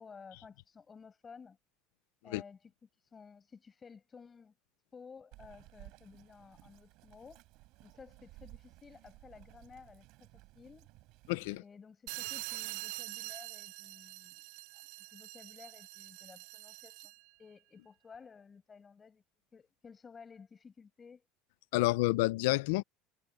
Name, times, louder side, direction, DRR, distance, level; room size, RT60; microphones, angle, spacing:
voice 1, 0.0-1.6 2.2-4.5 4.9-7.4 7.8-10.9 11.6-14.4 14.7-17.1 17.4-19.2 19.5-21.3 21.7-22.4, left 5 dB, 15° left, 6.6 m, -55 dB
Bird vocalization bird call bird song, 5.3-11.6, right 21 dB, 50° right, 5.3 m, -57 dB
voice 2, 11.3-11.6 21.7-22.8, left 21 dB, 85° left, 0.5 m, -29 dB
sound 1, 12.1-17.3, right 22 dB, 70° right, 0.5 m, -44 dB
cardioid pair, 175°, 0 cm